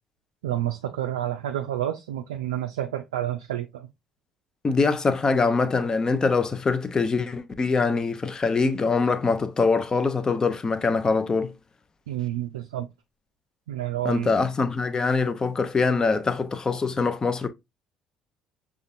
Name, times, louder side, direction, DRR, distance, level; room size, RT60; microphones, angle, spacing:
voice 1, 0.4-3.9 12.1-12.9 13.7-14.3, right 12 dB, 75° right, 0.4 m, -29 dB
voice 2, 4.6-11.5 14.0-17.5, left 4 dB, 30° left, 0.7 m, -23 dB
6.3 x 2.4 x 2.5 m
figure-of-eight pair, 50°, 2 cm